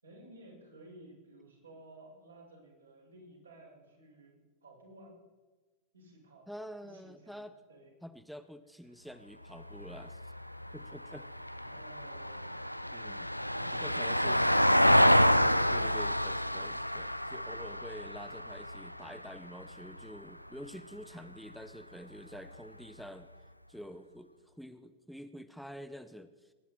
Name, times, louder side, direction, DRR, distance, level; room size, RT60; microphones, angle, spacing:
voice 1, 0.0-5.1 5.9-6.5 6.8-7.4 7.7-7.9 8.9-9.0 11.6-12.5, right 1 dB, 75° right, -3 dB, 6.1 m, -55 dB
voice 2, 6.5-7.5 8.0-10.3 10.7-11.3 12.9-13.3 13.8-14.4 15.7-23.3 23.7-26.5, equal, ahead, 10 dB, 0.7 m, -47 dB
Vehicle, 9.6-20.0 22.3-22.4, equal, 90° left, 0.4 m, -29 dB
22.0 x 10.5 x 4.5 m, 1.2 s
figure-of-eight pair, 90°, 0 cm